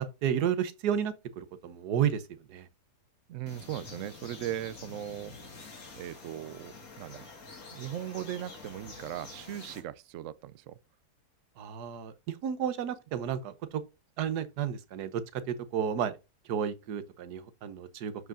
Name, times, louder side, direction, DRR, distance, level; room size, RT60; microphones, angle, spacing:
voice 1, 0.0-2.2 2.5-2.7 11.6-13.8 14.2-16.2 16.4-18.1, right 8 dB, 85° right, 1.4 m, -32 dB
voice 2, 3.3-5.5 6.0-7.3 7.7-10.8, right 12 dB, 70° right, 0.8 m, -38 dB
sound 1, 3.5-9.8, left 3 dB, 65° left, 2.3 m, -47 dB
12.5 x 4.8 x 2.5 m
omnidirectional pair, 1.7 m